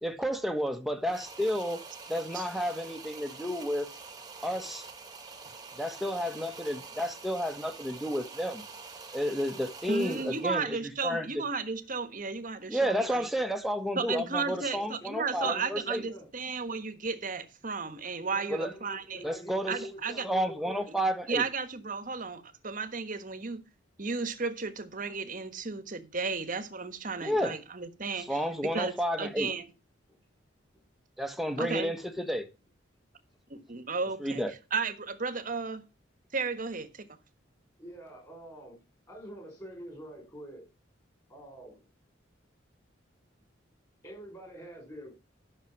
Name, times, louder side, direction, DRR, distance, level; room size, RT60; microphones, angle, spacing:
voice 1, 0.0-1.8 2.1-3.9 4.4-4.9 5.8-8.6 9.1-10.8 11.0-11.3 12.7-16.0 18.5-18.7 19.2-19.8 20.2-21.4 27.2-27.6 28.3-29.5 31.2-32.4 34.2-34.5, equal, ahead, 1.3 m, -31 dB
sound 1, 1.0-10.6, right 4 dB, 20° right, 1.5 m, -46 dB
voice 2, 9.9-13.3 13.9-19.2 19.7-20.2 20.9-21.0 21.3-23.6 24.0-29.7 31.6-31.9 33.5-34.4 34.7-35.8 36.3-37.1, right 4 dB, 40° right, 1.3 m, -34 dB
voice 3, 14.3-16.3 18.2-20.9 31.4-31.5 32.0-32.1 37.8-38.8 39.1-40.6 41.3-41.8 44.0-45.1, equal, 20° left, 5.0 m, -46 dB
12.0 x 6.6 x 5.9 m
head